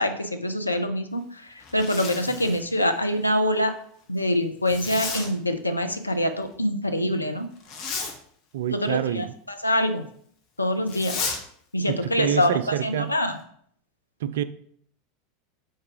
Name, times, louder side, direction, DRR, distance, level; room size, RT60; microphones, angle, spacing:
voice 1, 0.0-1.4 1.7-3.7 4.1-7.5 8.7-10.0 10.6-11.3 11.7-13.4, left 1 dB, 85° left, 7 dB, 0.6 m, -25 dB
Zipper (clothing), 1.6-2.7 4.7-5.3 7.6-8.2 10.9-11.4, left 4 dB, 40° left, 1.2 m, -32 dB
voice 2, 8.5-9.3 11.9-13.1 14.2-14.4, right 10 dB, 60° right, 13 dB, 0.4 m, -27 dB
4.7 x 4.6 x 4.6 m, 0.62 s
figure-of-eight pair, 80°, 0 cm